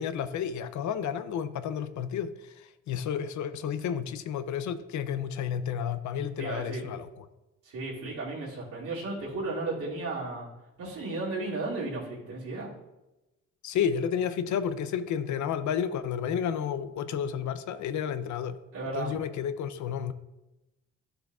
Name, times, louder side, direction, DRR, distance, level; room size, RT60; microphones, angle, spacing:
voice 1, 0.0-7.2 13.6-18.6 18.9-20.1, left 8 dB, 70° left, 12 dB, 0.6 m, -31 dB
voice 2, 6.4-6.9 7.6-10.5 10.8-12.7 18.7-19.1, right 2 dB, 80° right, -8 dB, 2.7 m, -34 dB
11.5 x 6.8 x 2.4 m, 1.0 s
cardioid pair, 90°, 30 cm